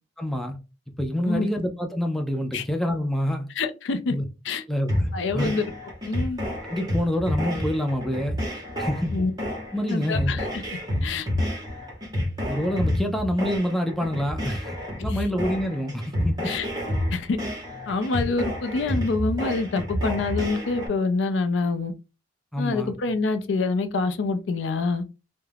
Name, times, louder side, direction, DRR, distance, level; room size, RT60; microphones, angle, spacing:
voice 1, 0.2-0.6 1.0-3.5 4.1-4.3 4.7-5.1 5.3-5.6 6.6-9.1 9.7-10.3 12.5-16.5 22.5-22.9, equal, ahead, 0.3 m, -27 dB
voice 2, 3.6-4.1 4.4-4.6 5.1-5.6 6.0-6.4 9.1-9.3 9.9-10.6 11.0-11.3 15.0-15.2 16.4-16.7 17.1-17.4 17.9-21.9 22.6-25.0, left 3 dB, 70° left, 0.4 m, -26 dB
sound 1, 4.9-20.9, equal, 20° right, 0.8 m, -30 dB
2.3 x 2.1 x 3.2 m
head